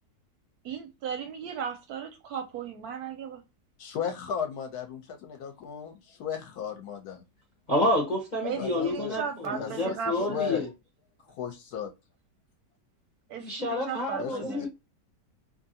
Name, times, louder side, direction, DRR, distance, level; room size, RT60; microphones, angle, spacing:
voice 1, 0.6-3.4 8.4-10.5 13.3-14.7, right 7 dB, 70° right, 1.0 m, -36 dB
voice 2, 3.8-7.2 8.6-9.2 9.5-10.0 10.3-10.6 11.4-11.9 14.2-14.7, left 7 dB, 70° left, 1.0 m, -35 dB
voice 3, 7.7-10.7 13.4-14.7, left 1 dB, 45° left, 0.5 m, -29 dB
2.7 x 2.5 x 2.6 m
omnidirectional pair, 1.9 m